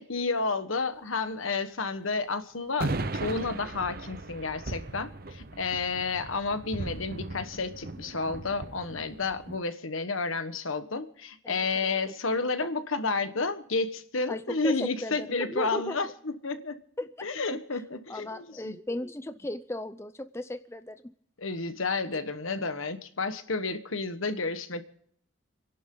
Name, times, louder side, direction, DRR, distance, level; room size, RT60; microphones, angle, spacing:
voice 1, 0.0-16.8 17.2-18.8 21.4-24.8, left 3 dB, 80° left, 10 dB, 1.3 m, -31 dB
sound 1, 2.8-9.6, right 2 dB, 45° right, 0.8 m, -37 dB
voice 2, 11.4-12.1 14.3-16.0 17.0-17.1 17.5-17.6 18.1-21.0, left 1 dB, 15° left, 10 dB, 0.6 m, -36 dB
29.5 x 11.5 x 3.9 m, 0.63 s
head